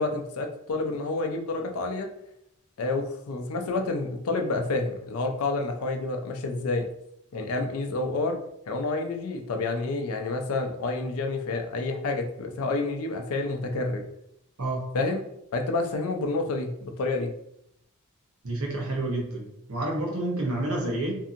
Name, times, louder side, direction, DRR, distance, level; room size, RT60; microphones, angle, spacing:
voice 1, 0.0-2.1 2.8-6.9 7.3-8.4 8.7-14.0 14.9-15.2 15.5-17.3, left 3 dB, 70° left, 4 dB, 0.4 m, -29 dB
voice 2, 18.4-21.1, right 2 dB, 70° right, -1 dB, 0.9 m, -29 dB
2.6 x 2.6 x 2.5 m, 0.78 s
head